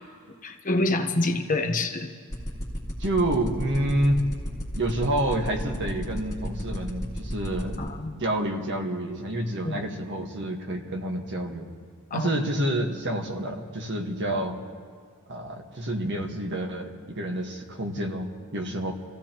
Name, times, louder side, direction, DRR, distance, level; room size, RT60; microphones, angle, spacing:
voice 1, 0.4-2.1 7.8-8.1 9.6-9.9 12.1-12.3, left 2 dB, 35° left, 3 dB, 1.0 m, -26 dB
sound 1, 2.3-7.9, equal, 20° left, 2.8 m, -31 dB
voice 2, 3.0-4.2 4.7-7.8 8.2-11.7 12.1-14.6 15.3-18.9, right 1 dB, 55° right, 3 dB, 1.6 m, -28 dB
26.5 x 15.5 x 3.0 m, 2.1 s
head